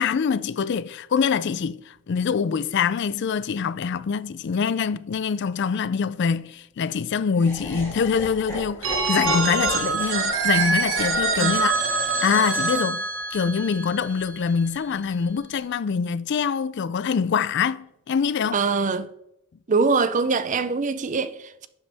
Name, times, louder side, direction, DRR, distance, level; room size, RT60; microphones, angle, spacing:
voice 1, 0.0-11.8 12.2-18.6, left 6 dB, 55° left, 0.3 m, -24 dB
Laughter, 7.3-13.5, equal, 10° left, 2.6 m, -39 dB
Telephone, 8.8-14.6, right 3 dB, 60° right, 1.6 m, -25 dB
voice 2, 18.5-19.1 19.7-21.7, right 4 dB, 35° right, 0.5 m, -23 dB
11.5 x 7.9 x 3.4 m
head